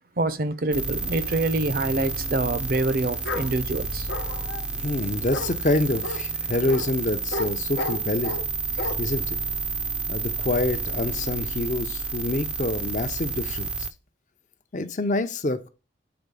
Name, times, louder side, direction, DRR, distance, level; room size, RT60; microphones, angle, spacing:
voice 1, 0.2-4.1, right 2 dB, 50° right, 0.6 m, -26 dB
sound 1, 0.7-13.9, right 3 dB, 5° right, 0.5 m, -30 dB
Bark, 3.2-3.5 4.1-4.6 5.3-5.5 6.0-6.2 6.7-6.9 7.3-7.5 7.8-8.4 8.8-8.9, left 3 dB, 85° left, 0.9 m, -31 dB
voice 2, 4.8-8.4 9.0-9.4 10.1-13.7 14.7-15.7, left 2 dB, 40° left, 0.6 m, -27 dB
5.9 x 4.1 x 5.3 m
head